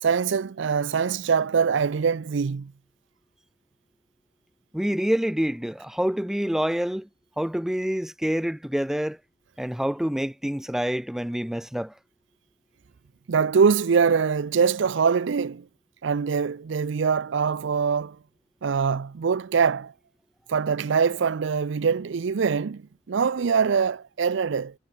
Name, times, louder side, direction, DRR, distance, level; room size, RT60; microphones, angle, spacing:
voice 1, 0.0-2.7 13.3-15.6 16.0-18.2 18.6-19.9 20.5-24.7, right 6 dB, 70° right, 0.5 m, -23 dB
voice 2, 4.7-7.1 7.4-9.2 9.6-11.9, equal, ahead, 0.3 m, -27 dB
head